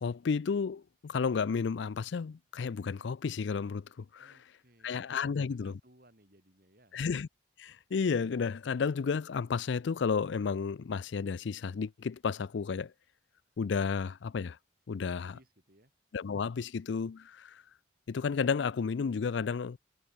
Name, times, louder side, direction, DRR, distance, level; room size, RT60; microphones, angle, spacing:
voice 1, 0.0-4.4 4.8-5.7 6.9-7.3 7.6-12.9 13.6-14.6 14.9-15.4 16.1-17.6 18.1-19.8, left 5 dB, 70° left, 0.4 m, -32 dB
voice 2, 4.2-5.1 5.6-7.0 15.0-15.9, right 1 dB, 50° right, 7.8 m, -63 dB
head